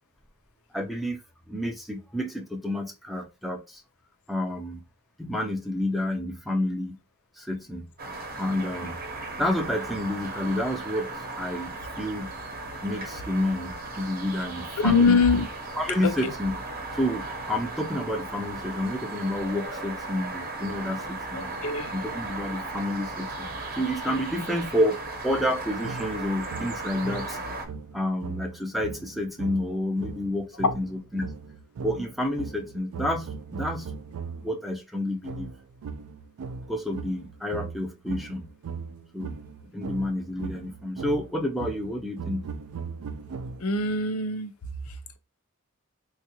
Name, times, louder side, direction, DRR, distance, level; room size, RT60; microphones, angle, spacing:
voice 1, 0.7-1.2 1.5-3.8 4.3-4.8 5.2-7.0 7.4-7.9 8.3-9.0 9.4-11.1 11.4-11.7 12.0-12.3 12.8-15.2 15.8-16.6 16.9-21.5 21.9-23.5 23.8-27.4 27.9-31.3 31.8-33.9 34.4-35.5 36.7-38.5 39.1-39.4 39.7-42.5, left 1 dB, ahead, 0.4 m, -29 dB
sound 1, 8.0-27.7, right 2 dB, 45° right, 0.8 m, -36 dB
voice 2, 14.8-15.4 16.0-16.1 21.6-21.9 43.6-44.5, left 4 dB, 80° left, 0.5 m, -22 dB
sound 2, 25.8-34.6 35.2-43.9, right 5 dB, 80° right, 0.3 m, -39 dB
3.6 x 2.4 x 2.8 m
head